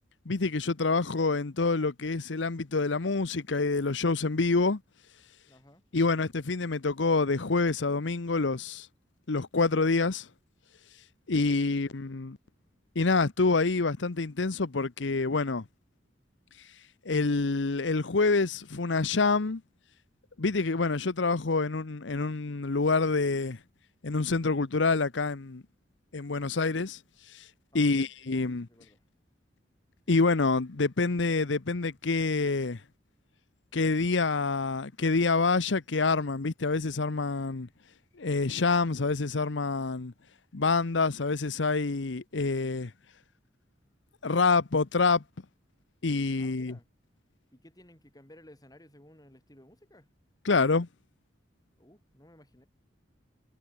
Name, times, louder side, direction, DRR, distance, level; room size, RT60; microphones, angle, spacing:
voice 1, 0.3-4.8 5.9-8.9 9.3-10.3 11.3-12.4 12.9-15.6 17.0-19.6 20.4-23.6 24.0-25.6 26.1-27.0 27.3-27.4 27.7-28.7 30.1-32.8 33.7-37.7 38.2-40.1 40.5-42.9 44.2-45.2 46.0-46.8 50.4-50.9, left 3 dB, 70° left, 0.9 m, -27 dB
voice 2, 5.5-5.8 27.7-29.0 46.4-46.9 47.5-50.1 51.8-52.7, left 1 dB, 20° left, 3.9 m, -56 dB
head